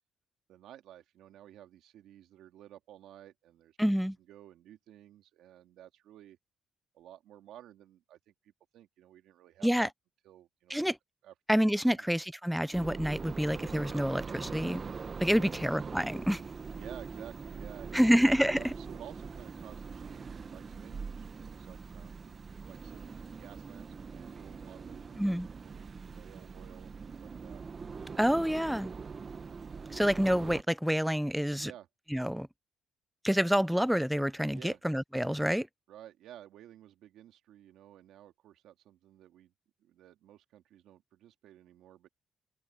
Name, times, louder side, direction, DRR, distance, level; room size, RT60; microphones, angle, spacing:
voice 1, 0.5-3.8 4.3-6.4 6.9-9.9 10.2-10.8 11.2-12.1 15.4-15.6 16.8-18.2 18.5-22.4 22.6-25.3 25.6-27.6 31.6-31.9 34.5-34.8 35.9-39.5 39.8-42.1, right 12 dB, 85° right, 2.1 m, -53 dB
voice 2, 3.8-4.2 9.6-9.9 10.7-11.0 11.5-14.8 15.2-16.4 17.9-18.6 25.2-25.5 28.2-28.9 29.9-31.7 32.1-32.5 33.2-35.7, equal, ahead, 0.4 m, -28 dB
sound 1, 12.7-30.6, right 5 dB, 40° right, 1.0 m, -42 dB
cardioid pair, 90°, 0 cm